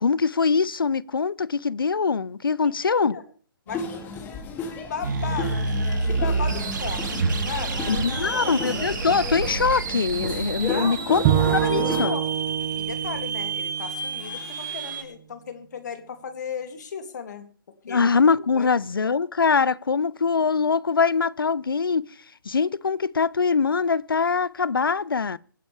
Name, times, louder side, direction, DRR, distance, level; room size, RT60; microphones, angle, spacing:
voice 1, 0.0-3.2 7.9-12.1 17.9-22.1 22.5-25.4, left 5 dB, 70° left, 0.6 m, -23 dB
voice 2, 2.6-3.2 3.7-8.6 10.6-11.0 11.4-12.3 12.8-17.5 17.9-18.0 18.5-18.7, left 7 dB, 50° left, 2.7 m, -36 dB
sound 1, 3.7-12.0, left 4 dB, 15° left, 2.6 m, -34 dB
sound 2, 5.0-15.0, right 4 dB, 60° right, 3.6 m, -29 dB
Bowed string instrument, 11.2-14.5, right 11 dB, 25° right, 0.9 m, -26 dB
24.5 x 10.5 x 3.5 m
figure-of-eight pair, 140°, 12 cm